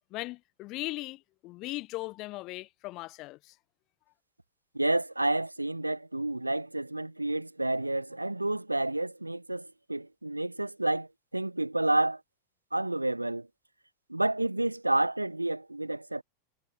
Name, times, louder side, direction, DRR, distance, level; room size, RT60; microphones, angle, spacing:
voice 1, 0.1-3.4, left 20 dB, 40° left, 1.1 m, -38 dB
voice 2, 4.7-12.2 12.7-13.5 14.1-16.2, right 2 dB, 85° right, 0.4 m, -30 dB
figure-of-eight pair, 90°, 0 cm